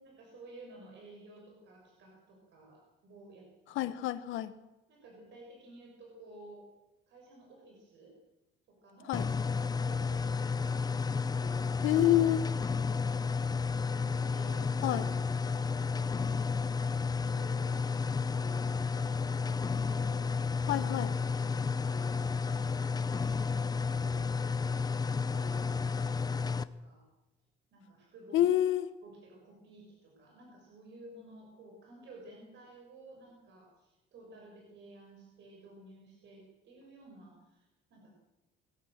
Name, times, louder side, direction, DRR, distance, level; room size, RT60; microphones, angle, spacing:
voice 1, 0.2-3.9 4.9-6.7 7.1-8.1 8.7-9.3 9.5-10.9 11.5-12.2 12.9-15.1 15.5-15.8 16.5-17.8 18.2-19.5 19.8-20.8 21.3-22.1 22.4-24.3 24.6-27.0 27.7-28.5 29.0-38.1, right 2 dB, 65° right, 0 dB, 6.7 m, -54 dB
voice 2, 3.7-4.5 9.1-9.3 11.8-12.4 14.8-15.1 20.7-21.1 28.3-28.9, left 12 dB, 85° left, 12 dB, 1.5 m, -27 dB
sound 1, 9.1-26.6, left 5 dB, 20° left, 0.7 m, -32 dB
21.0 x 16.5 x 7.7 m, 0.99 s
cardioid pair, 140°, 20 cm